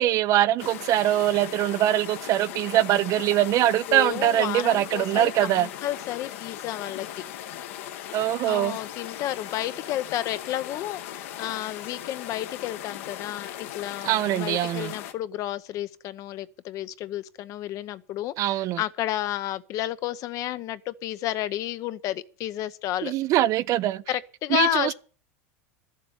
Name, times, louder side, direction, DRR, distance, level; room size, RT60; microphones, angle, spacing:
voice 1, 0.0-5.7 8.1-8.8 14.0-14.9 18.4-18.8 23.0-24.0 24.5-24.9, right 14 dB, 45° right, 0.6 m, -23 dB
sound 1, 0.6-15.1, left 11 dB, 75° left, 1.4 m, -38 dB
voice 2, 3.9-7.1 8.5-23.1 24.1-24.9, left 13 dB, 45° left, 0.8 m, -31 dB
13.0 x 7.5 x 8.5 m
supercardioid pair, 115°, 8 cm